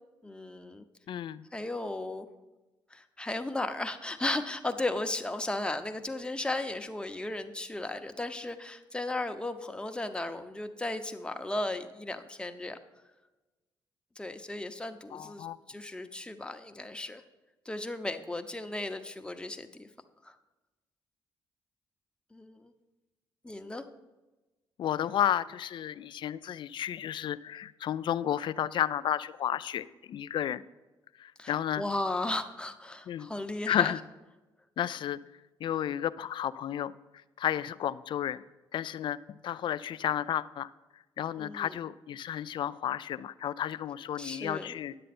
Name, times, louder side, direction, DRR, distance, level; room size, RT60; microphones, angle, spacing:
voice 1, 0.2-0.8 1.5-2.3 2.9-12.8 14.2-17.2 17.7-19.9 20.2-20.3 22.3-22.7 23.4-23.9 31.4-33.9 41.4-41.8 44.2-44.8, left 2 dB, 10° left, 7 dB, 0.8 m, -35 dB
voice 2, 1.1-1.4 15.1-15.6 24.8-30.6 31.2-31.8 33.1-33.3 33.7-34.0 34.8-35.2 35.6-36.9 37.4-38.4 38.7-40.7 41.2-45.0, left 10 dB, 65° left, 16 dB, 0.4 m, -32 dB
10.5 x 7.7 x 4.3 m, 1.1 s
cardioid pair, 75°, 9 cm